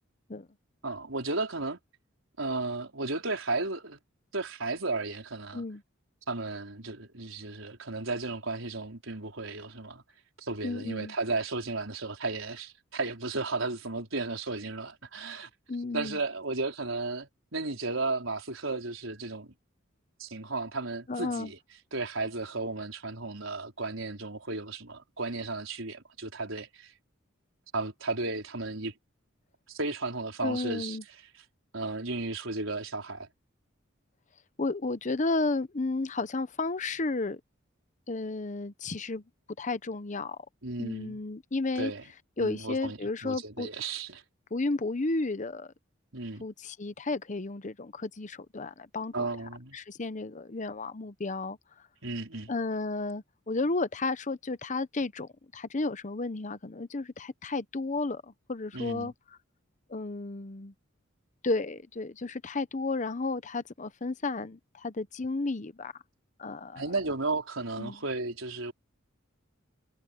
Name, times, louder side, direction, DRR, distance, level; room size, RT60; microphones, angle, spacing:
voice 1, 0.8-1.8 2.4-4.0 4.3-5.6 6.3-10.0 10.4-15.5 15.9-19.5 20.2-21.6 21.9-26.9 27.7-28.9 29.7-31.0 31.7-33.3 40.6-41.2 41.8-42.0 42.4-44.2 46.1-46.4 49.1-49.8 52.0-52.5 58.7-59.1 66.8-68.7, right 3 dB, 80° right, 4.6 m, -34 dB
voice 2, 10.6-11.1 15.7-16.2 21.1-21.5 30.4-31.0 34.6-37.4 38.1-39.2 39.6-40.4 40.8-41.9 42.4-43.7 44.5-45.7 46.4-49.3 49.7-51.6 52.5-59.1 59.9-60.7 61.4-65.9 66.4-66.8 67.8-68.0, left 3 dB, 40° left, 0.8 m, -32 dB
head